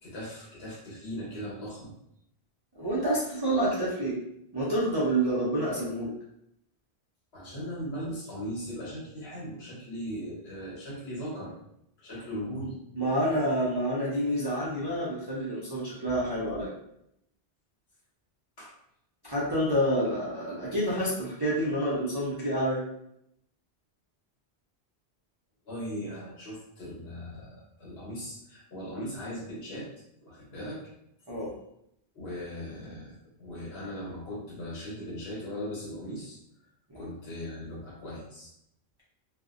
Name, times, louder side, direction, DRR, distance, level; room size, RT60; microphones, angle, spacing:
voice 1, 0.0-1.9 7.3-11.5 12.0-12.8 18.6-18.7 25.7-29.9 30.2-30.8 32.1-36.4 36.9-38.5, equal, 70° left, -5 dB, 1.2 m, -38 dB
voice 2, 2.8-4.2 4.5-6.1 12.9-16.7 19.2-22.8 31.3-31.5 36.9-37.0, right 1 dB, 40° right, -8 dB, 0.4 m, -28 dB
2.5 x 2.0 x 2.4 m, 0.76 s
omnidirectional pair, 1.1 m